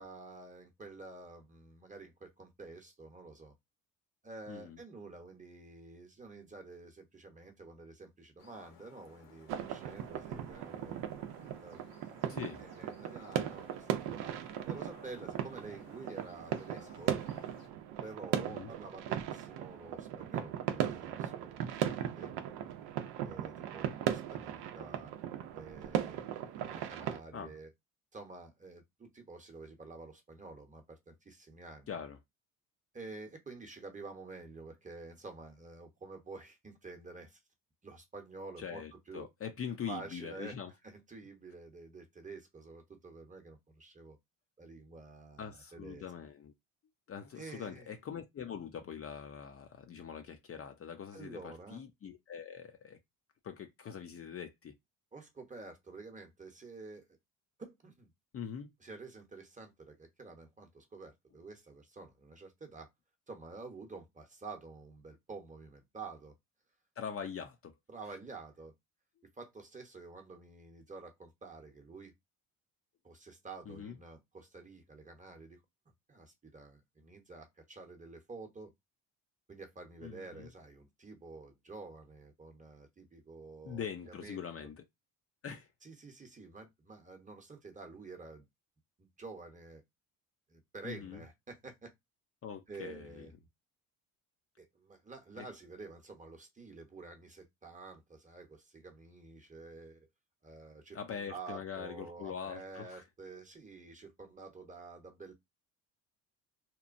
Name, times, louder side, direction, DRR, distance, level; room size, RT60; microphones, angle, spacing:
voice 1, 0.0-3.5 4.2-11.1 11.6-11.9 12.6-14.3 14.7-17.1 18.0-21.7 21.9-22.7 23.2-25.1 25.5-26.2 26.6-27.7 28.1-31.9 32.9-37.4 37.8-39.3 39.9-40.6 40.8-44.2 44.6-46.1 47.3-48.0 51.1-51.8 55.1-57.1 57.6-58.1 58.8-62.9 63.3-66.3 67.2-67.3 67.9-68.7 69.4-72.1 73.0-75.6 76.1-78.7 79.5-84.4 85.8-88.5 89.0-89.8 90.5-91.9 92.7-93.3 94.6-100.1 100.4-105.3, right 3 dB, 20° right, 0.8 m, -49 dB
voice 2, 4.5-4.8 12.3-12.6 18.5-18.7 27.3-27.5 31.9-32.2 38.6-40.7 45.4-46.5 47.1-53.0 53.4-54.7 58.3-58.7 67.0-67.7 73.7-74.0 80.0-80.5 83.6-84.8 85.4-85.7 90.8-91.2 92.4-93.3 95.4-95.5 100.9-103.0, left 7 dB, 40° left, 0.5 m, -43 dB
sound 1, 8.4-17.7, left 6 dB, 65° left, 1.0 m, -59 dB
sound 2, 9.5-27.2, right 10 dB, 80° right, 0.5 m, -38 dB
3.0 x 2.1 x 2.5 m
supercardioid pair, 80°, 38 cm